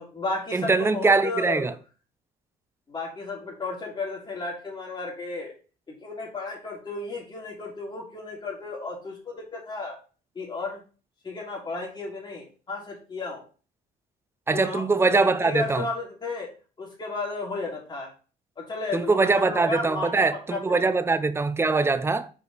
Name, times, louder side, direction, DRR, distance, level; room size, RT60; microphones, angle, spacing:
voice 1, 0.0-1.6 2.9-5.5 5.9-10.0 10.3-10.8 11.2-13.5 14.5-16.5 16.8-18.1 18.6-20.9, left 3 dB, 25° left, 2.8 m, -34 dB
voice 2, 0.5-1.7 14.5-15.9 18.9-22.3, right 3 dB, 15° right, 0.5 m, -22 dB
5.0 x 4.9 x 4.0 m
cardioid pair, 110°, 17 cm